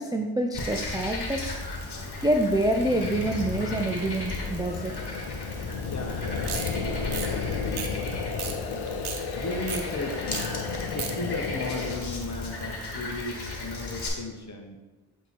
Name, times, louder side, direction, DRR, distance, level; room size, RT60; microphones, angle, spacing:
voice 1, 0.0-1.4 2.2-4.9, right 1 dB, 10° right, 2 dB, 0.5 m, -26 dB
Frog, 0.5-14.1, left 2 dB, 50° left, 1.5 m, -36 dB
sound 1, 2.7-12.0, left 5 dB, 80° left, 0.7 m, -33 dB
voice 2, 5.9-8.9 9.4-10.6 10.9-14.8, left 2 dB, 35° left, 3 dB, 1.1 m, -36 dB
sound 2, 6.4-6.7 7.1-7.3 7.8-8.1 8.4-8.5 8.9-9.2 9.7-9.8 10.3-10.5 10.7-11.1, right 7 dB, 75° right, 0.9 m, -34 dB
7.8 x 3.0 x 4.2 m, 1.2 s
cardioid pair, 40°, 50 cm